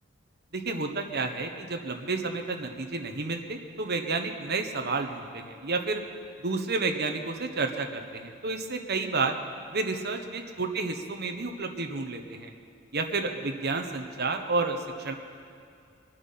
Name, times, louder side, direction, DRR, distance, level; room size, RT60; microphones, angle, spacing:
voice 1, 0.5-6.0 6.4-9.4 9.7-12.5 12.9-15.1, right 3 dB, 55° right, 4 dB, 1.2 m, -31 dB
23.0 x 9.2 x 5.8 m, 2.5 s
head